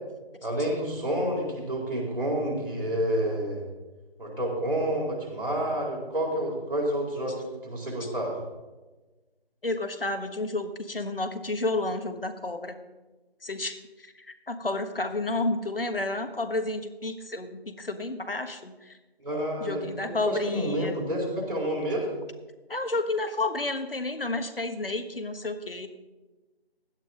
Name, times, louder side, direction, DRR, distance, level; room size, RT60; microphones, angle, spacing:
voice 1, 0.4-3.6 4.2-8.3 19.2-22.2, right 1 dB, 60° right, -3 dB, 4.4 m, -29 dB
voice 2, 9.6-12.8 13.4-19.0 19.6-20.9 22.7-25.9, left 2 dB, 65° left, 8 dB, 1.4 m, -31 dB
16.0 x 11.5 x 3.8 m, 1.2 s
figure-of-eight pair, 165°, 31 cm